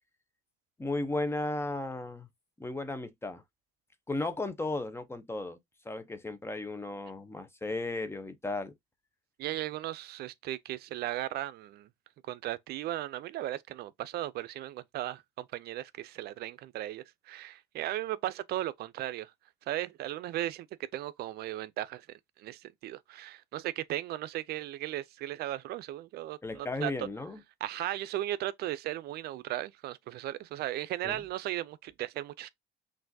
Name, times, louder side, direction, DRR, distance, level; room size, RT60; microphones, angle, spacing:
voice 1, 0.8-2.3 2.6-3.4 4.1-5.6 5.8-8.7 26.4-27.4 31.0-31.2, left 2 dB, 15° left, 0.7 m, -35 dB
voice 2, 9.4-11.9 12.3-19.3 19.7-20.7 20.9-22.1 22.4-27.1 27.6-32.5, right 14 dB, 70° right, 0.5 m, -36 dB
6.0 x 2.5 x 2.7 m
cardioid pair, 110°, 17 cm